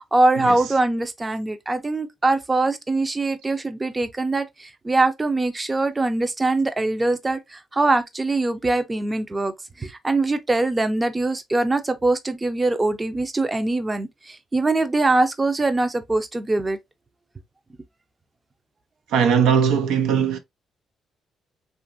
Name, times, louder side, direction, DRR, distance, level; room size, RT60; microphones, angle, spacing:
voice 1, 0.1-9.5 9.8-16.8, right 2 dB, 20° right, 0.4 m, -22 dB
voice 2, 19.1-20.4, right 7 dB, 90° right, 0.5 m, -19 dB
2.9 x 2.5 x 2.4 m
cardioid pair, 90°, 0 cm